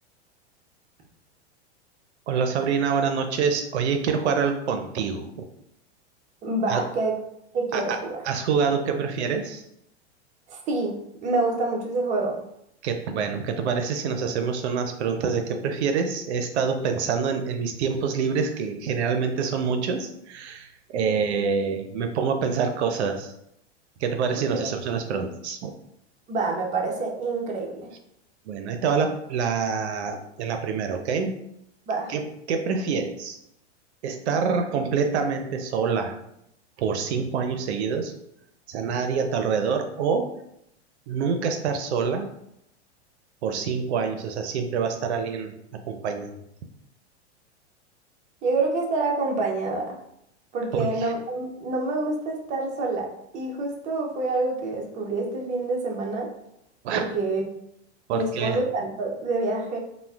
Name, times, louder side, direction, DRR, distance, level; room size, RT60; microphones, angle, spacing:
voice 1, 2.3-5.5 6.7-6.8 7.7-8.0 8.2-9.6 12.8-23.3 24.0-25.7 28.5-31.3 32.1-33.4 34.0-36.2 36.8-38.1 38.7-40.3 41.1-42.3 43.4-46.4 50.7-50.9 56.8-57.0 58.1-58.6, right 6 dB, 70° right, 6 dB, 0.5 m, -26 dB
voice 2, 6.4-7.1 7.5-8.2 10.5-12.4 21.0-21.2 24.6-24.7 26.3-27.9 31.9-32.1 48.4-50.0 50.5-53.1 53.3-56.3 56.9-57.4 58.1-59.8, right 3 dB, 20° right, 0 dB, 0.5 m, -27 dB
3.5 x 2.1 x 2.3 m, 0.77 s
hypercardioid pair, 115°, 34 cm